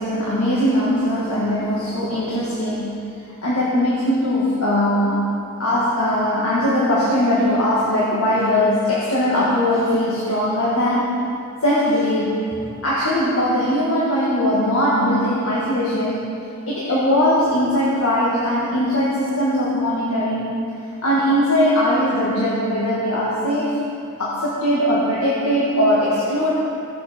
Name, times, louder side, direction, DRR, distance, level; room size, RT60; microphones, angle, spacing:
voice 1, 0.0-3.0 3.4-5.3 5.6-11.1 11.6-12.4 12.8-16.2 16.7-20.5 21.0-23.8 24.2-26.5, left 1 dB, 70° left, -7 dB, 1.9 m, -20 dB
16.0 x 7.7 x 4.4 m, 2.6 s
head